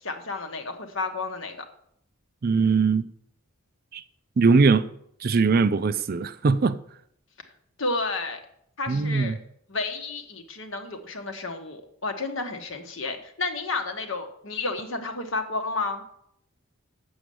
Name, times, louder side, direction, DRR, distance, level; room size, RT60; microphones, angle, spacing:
voice 1, 0.0-1.6 7.8-8.4 8.8-9.4 9.7-16.0, left 3 dB, 60° left, 1.2 m, -31 dB
voice 2, 2.4-3.0 3.9-4.0 4.4-4.9 5.2-6.8 8.9-9.4, right 4 dB, 45° right, 0.4 m, -21 dB
7.0 x 6.5 x 7.6 m
head